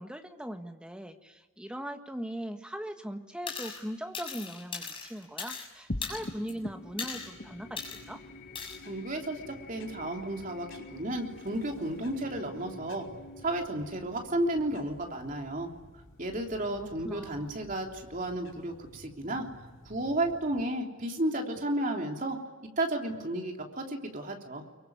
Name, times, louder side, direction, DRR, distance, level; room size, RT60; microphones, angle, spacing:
voice 1, 0.0-8.2 16.7-17.5, equal, 5° right, 5 dB, 1.5 m, -40 dB
sound 1, 3.5-3.8 4.1-5.7 6.0-6.5 7.0-7.3 7.8-8.0 8.6-8.8, left 5 dB, 25° left, 6.6 m, -38 dB
sound 2, 5.9-16.6, left 1 dB, 45° left, 1.0 m, -45 dB
sound 3, 6.2-20.6, equal, 75° left, 5.7 m, -54 dB
voice 2, 8.8-13.1 13.4-15.7 16.2-19.4 19.8-22.4 22.8-24.6, right 1 dB, 40° right, 2 dB, 3.3 m, -33 dB
25.0 x 23.5 x 9.5 m, 1.3 s
head